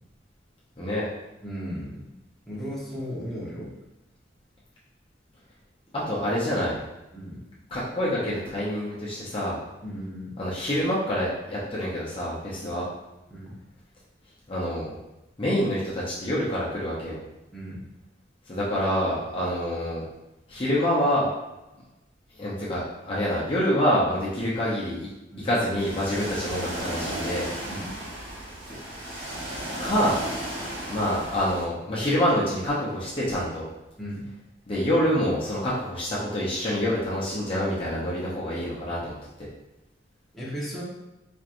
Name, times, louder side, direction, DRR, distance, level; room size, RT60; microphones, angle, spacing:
voice 1, 0.8-1.1 5.9-6.8 7.7-9.6 10.4-12.9 14.5-14.9 15.4-17.2 18.5-20.0 20.5-21.3 22.4-25.1 25.4-27.5 29.8-30.2 30.9-33.6 34.7-39.2, equal, 30° left, -7 dB, 0.8 m, -26 dB
voice 2, 1.4-2.0 2.5-3.7 7.1-7.4 9.8-10.4 13.3-13.6 17.5-17.8 25.3-25.5 27.7-27.9 34.0-34.3 40.3-40.8, equal, ahead, -8 dB, 1.1 m, -35 dB
Ocean, 25.8-31.6, right 1 dB, 75° right, 1.3 m, -34 dB
4.3 x 3.2 x 2.5 m, 0.96 s
head